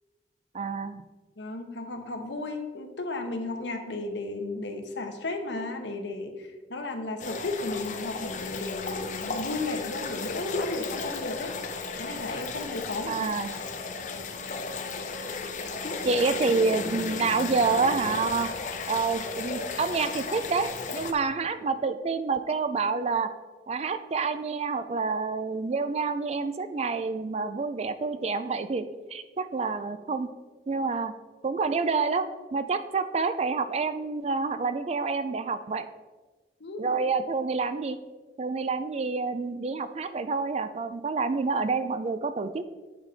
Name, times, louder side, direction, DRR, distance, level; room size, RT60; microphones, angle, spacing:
voice 1, 0.5-1.0 13.1-13.5 16.0-18.5 18.9-23.3 23.7-30.3 30.7-31.1 31.4-35.9 36.8-38.0 38.4-42.7, right 4 dB, 35° right, 11 dB, 0.4 m, -28 dB
voice 2, 1.4-11.5 12.0-13.3 36.6-36.9, left 2 dB, 75° left, 5 dB, 1.0 m, -34 dB
sound 1, 7.2-21.1, left 4 dB, 40° left, 0.6 m, -34 dB
8.9 x 5.1 x 4.0 m, 1.3 s
head